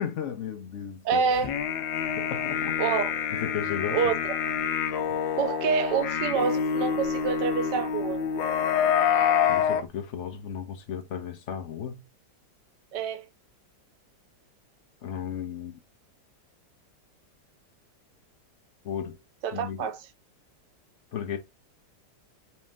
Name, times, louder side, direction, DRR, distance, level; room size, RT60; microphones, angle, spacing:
voice 1, 0.0-1.3 2.2-2.8 3.3-4.2 9.5-12.0 15.0-15.7 18.8-19.2 19.5-19.9 21.1-21.4, left 8 dB, 60° left, 0.7 m, -34 dB
voice 2, 1.0-1.5 2.8-3.1 3.9-4.2 5.4-8.2 12.9-13.2 19.4-20.0, right 6 dB, 75° right, 1.2 m, -27 dB
sound 1, 1.4-9.8, left 8 dB, 90° left, 1.4 m, -27 dB
4.2 x 2.7 x 3.5 m
omnidirectional pair, 2.0 m